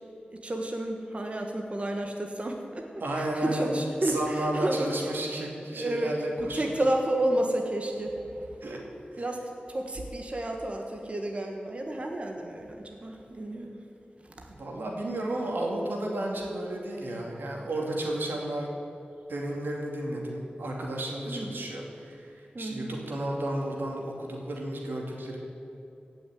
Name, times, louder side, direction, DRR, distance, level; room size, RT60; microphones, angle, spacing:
voice 1, 0.3-2.9 3.2-4.9 5.7-8.5 9.2-9.4 9.7-13.8 14.4-14.5 21.3-21.6 22.5-23.0, right 1 dB, 35° right, 2 dB, 1.3 m, -31 dB
voice 2, 3.0-3.7 4.0-6.8 8.6-8.8 9.1-9.2 14.5-18.7 19.3-22.3 22.6-25.4, right 1 dB, 90° right, -1 dB, 2.5 m, -32 dB
16.0 x 6.4 x 9.2 m, 2.7 s
wide cardioid pair, 95°, 3 cm